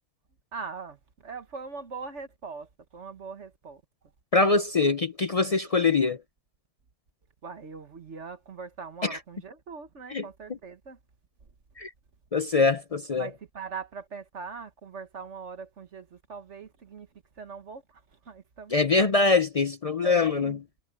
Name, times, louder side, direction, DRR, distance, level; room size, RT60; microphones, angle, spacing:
voice 1, 0.5-3.8 7.4-11.0 13.1-17.1 17.4-19.1 20.0-20.6, right 5 dB, 55° right, 1.6 m, -41 dB
voice 2, 4.3-6.2 9.1-9.2 10.1-10.2 11.8-11.9 12.3-13.3 18.7-20.6, left 4 dB, 60° left, 0.3 m, -23 dB
omnidirectional pair, 1.5 m